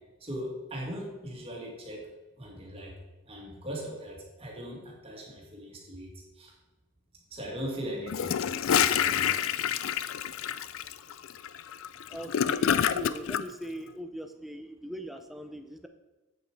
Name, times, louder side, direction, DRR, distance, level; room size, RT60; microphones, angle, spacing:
voice 1, 0.2-2.1 2.4-2.9 3.3-6.1 6.4-6.5 7.3-8.3 8.7-9.4, equal, 25° right, -1 dB, 2.1 m, -39 dB
Gurgling / Toilet flush, 8.1-13.4, left 9 dB, 65° left, 0.4 m, -27 dB
voice 2, 12.1-15.9, equal, ahead, 6 dB, 0.5 m, -40 dB
8.2 x 7.1 x 4.7 m, 1.1 s
head